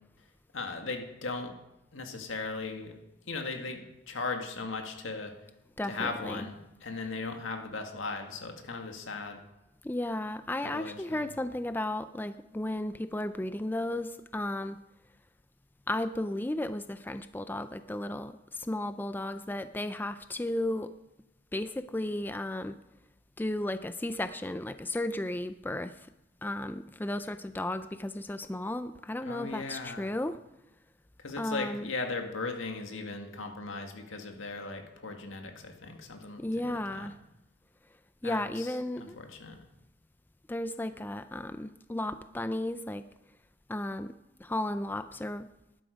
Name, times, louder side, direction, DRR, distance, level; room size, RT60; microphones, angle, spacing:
voice 1, 0.5-1.5 1.9-3.0 3.2-5.3 5.9-9.4 10.6-11.3 29.2-30.2 31.2-37.1 38.2-39.6, left 3 dB, 90° left, 4 dB, 1.9 m, -38 dB
voice 2, 5.8-6.4 9.8-14.8 15.9-18.3 18.6-20.9 21.5-22.8 23.4-25.9 26.4-30.4 31.4-31.9 36.4-37.1 38.2-39.2 40.5-43.0 43.7-44.1 44.4-45.5, left 1 dB, 10° left, 11 dB, 0.4 m, -34 dB
13.0 x 11.5 x 5.2 m, 0.92 s
head